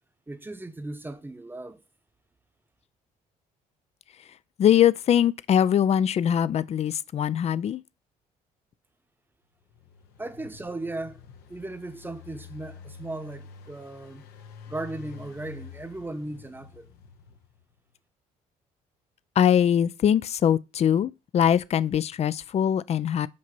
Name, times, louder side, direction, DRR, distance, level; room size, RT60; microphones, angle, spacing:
voice 1, 0.3-1.8 10.2-11.2 11.5-14.3 14.7-16.9, right 2 dB, 15° right, 0.9 m, -37 dB
voice 2, 4.6-7.8 19.4-23.3, left 9 dB, 40° left, 0.4 m, -22 dB
Engine, 9.6-17.6, left 6 dB, 80° left, 1.0 m, -47 dB
7.4 x 2.9 x 6.0 m
supercardioid pair, 75°, 16 cm